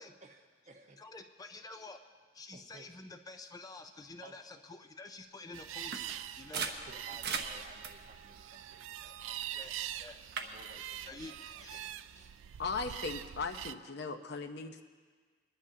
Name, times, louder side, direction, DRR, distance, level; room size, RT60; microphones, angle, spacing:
voice 1, 0.0-1.0 2.5-2.9 4.2-4.3 6.5-12.3, right 2 dB, 40° right, 1 dB, 1.2 m, -57 dB
voice 2, 1.0-2.0 2.3-6.8 9.5-9.7 10.0-11.9, left 3 dB, 20° left, 6 dB, 0.4 m, -50 dB
sound 1, 5.5-13.7, right 11 dB, 90° right, 0.3 m, -44 dB
sound 2, 5.9-9.6 10.0-10.5, right 5 dB, 60° right, 0.8 m, -41 dB
voice 3, 12.6-14.8, left 4 dB, 60° left, 7 dB, 0.8 m, -38 dB
22.5 x 11.0 x 2.8 m, 1.5 s
head